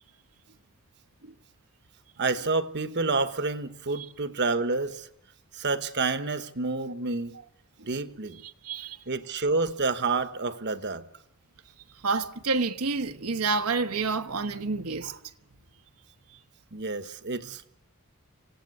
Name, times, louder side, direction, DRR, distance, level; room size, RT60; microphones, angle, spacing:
voice 1, 2.2-5.1 5.5-7.4 7.9-8.4 9.1-11.0 15.0-15.2 16.7-17.8, right 3 dB, 50° right, 1.1 m, -29 dB
voice 2, 8.4-9.0 12.0-15.1, right 4 dB, 85° right, 1.2 m, -29 dB
26.0 x 17.0 x 9.5 m
head